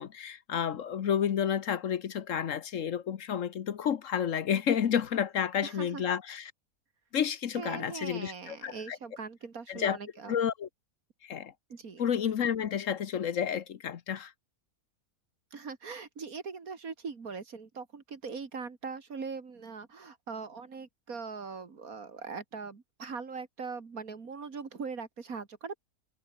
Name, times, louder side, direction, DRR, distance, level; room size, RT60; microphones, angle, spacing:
voice 1, 0.0-6.5 7.1-9.0 9.7-10.0 10.3-10.7 11.2-11.5 12.0-14.3, left 8 dB, 60° left, 1.3 m, -30 dB
voice 2, 5.6-6.0 7.6-10.3 11.7-12.1 15.5-25.8, right 5 dB, 75° right, 2.7 m, -41 dB
omnidirectional pair, 1.5 m